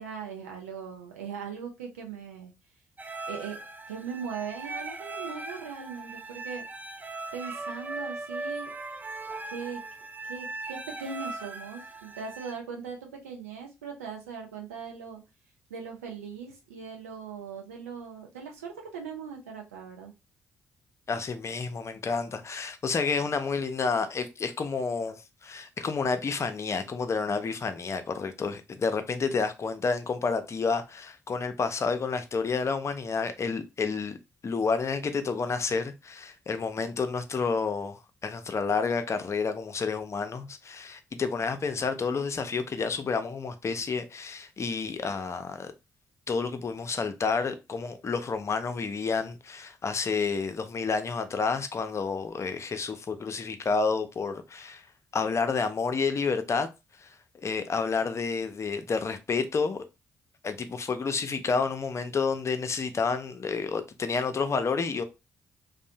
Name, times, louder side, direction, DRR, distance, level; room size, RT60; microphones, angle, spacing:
voice 1, 0.0-2.5 3.3-3.6 3.9-6.6 7.3-8.7 9.5-9.8 10.2-15.2 15.7-20.1, right 6 dB, 85° right, 0.5 m, -39 dB
sound 1, 3.0-12.5, right 3 dB, 20° right, 0.4 m, -39 dB
voice 2, 21.1-34.2 34.4-45.7 46.3-54.8 55.1-56.7 57.0-57.1 57.4-59.9 60.4-65.0, left 5 dB, 40° left, 0.5 m, -30 dB
2.6 x 2.0 x 2.7 m
hypercardioid pair, 40°, 8 cm